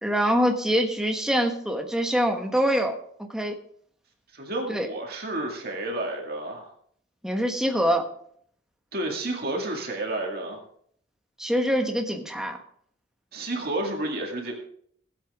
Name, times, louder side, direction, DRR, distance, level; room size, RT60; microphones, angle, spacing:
voice 1, 0.0-3.5 4.7-4.9 7.2-8.1 11.4-12.6, equal, 5° right, 3 dB, 1.2 m, -24 dB
voice 2, 4.3-6.7 8.9-10.6 13.3-14.5, right 1 dB, 55° right, 1 dB, 2.1 m, -30 dB
17.5 x 7.9 x 3.5 m, 0.64 s
head